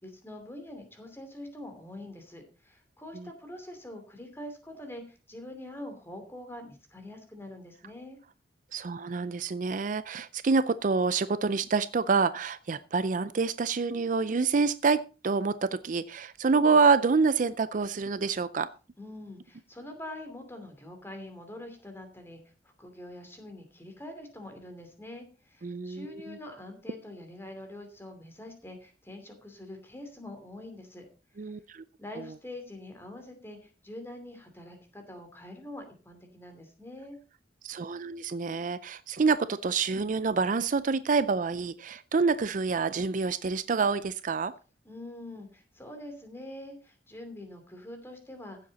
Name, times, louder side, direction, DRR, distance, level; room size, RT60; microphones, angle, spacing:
voice 1, 0.0-8.2 19.0-22.4 22.8-31.1 31.4-31.5 32.0-37.2 44.8-48.6, left 1 dB, 15° left, 5 dB, 2.8 m, -44 dB
voice 2, 8.7-18.7 25.6-26.4 31.4-31.8 37.6-44.5, right 4 dB, 45° right, 14 dB, 0.4 m, -27 dB
15.5 x 7.6 x 4.1 m, 0.34 s
head